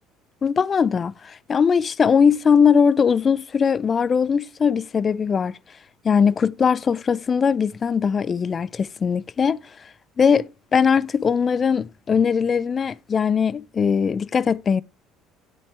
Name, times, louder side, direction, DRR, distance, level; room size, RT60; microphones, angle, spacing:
voice 1, 0.4-5.5 6.0-9.6 10.2-14.8, left 6 dB, 35° left, 0.4 m, -20 dB
9.3 x 8.6 x 3.3 m
supercardioid pair, 90°, 0 cm